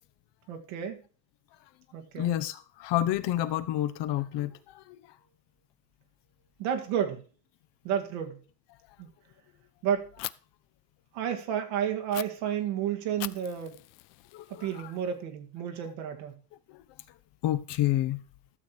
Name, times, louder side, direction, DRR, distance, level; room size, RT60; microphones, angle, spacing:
voice 1, 0.5-1.0 1.9-2.3 6.6-7.2 7.8-8.4 9.0-9.1 9.8-10.1 11.1-13.8 14.6-16.3, right 9 dB, 80° right, 2.1 m, -31 dB
voice 2, 2.1-5.0 14.3-14.7 17.4-18.2, left 13 dB, 60° left, 1.0 m, -29 dB
Fire, 10.2-10.3 12.1-12.2 13.2-15.1, left 21 dB, 85° left, 0.5 m, -41 dB
12.5 x 6.7 x 4.5 m
supercardioid pair, 95°, 46 cm